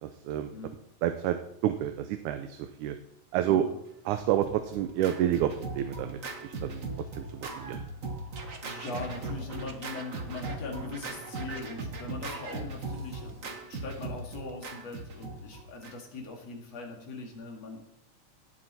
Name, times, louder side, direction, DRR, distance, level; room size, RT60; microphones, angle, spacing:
voice 1, 0.0-0.5 1.0-1.4 1.6-3.0 3.3-3.7 4.1-6.8 7.2-7.8, right 11 dB, 85° right, 8 dB, 2.2 m, -29 dB
voice 2, 3.5-3.8 7.0-7.1 8.6-17.9, left 3 dB, 60° left, 1 dB, 3.2 m, -41 dB
Scratching (performance technique), 4.1-16.2, right 3 dB, 45° right, 1.0 m, -39 dB
17.5 x 7.6 x 4.2 m, 0.79 s
omnidirectional pair, 3.4 m